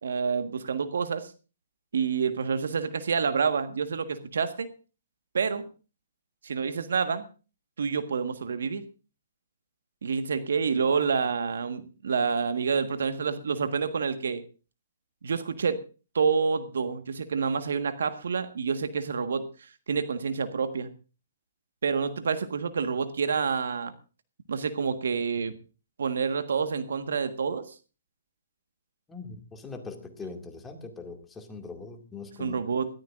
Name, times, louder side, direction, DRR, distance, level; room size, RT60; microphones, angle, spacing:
voice 1, 0.0-1.3 1.9-4.7 5.3-5.7 6.4-7.3 7.8-8.8 10.0-14.4 15.2-15.8 16.1-19.5 19.9-20.9 21.8-23.9 24.5-25.6 26.0-27.7 32.4-32.9, right 5 dB, 75° right, 10 dB, 1.5 m, -28 dB
voice 2, 29.1-32.7, left 4 dB, 10° left, 4 dB, 2.3 m, -41 dB
21.0 x 13.5 x 2.5 m, 0.34 s
hypercardioid pair, 140°, 0 cm